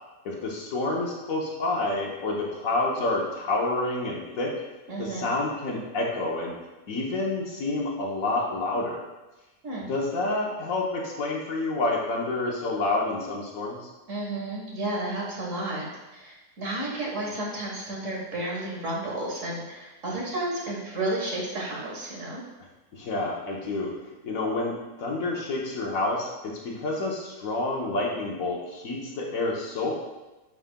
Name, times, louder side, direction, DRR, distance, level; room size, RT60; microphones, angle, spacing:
voice 1, 0.2-4.5 5.0-6.6 6.9-9.0 9.9-13.9 22.9-23.9 24.2-29.9, left 2 dB, 60° left, -2 dB, 1.3 m, -28 dB
voice 2, 4.9-5.3 9.6-9.8 14.1-22.4, right 1 dB, 55° right, -3 dB, 1.6 m, -32 dB
9.1 x 4.9 x 2.2 m, 1.1 s
omnidirectional pair, 1.7 m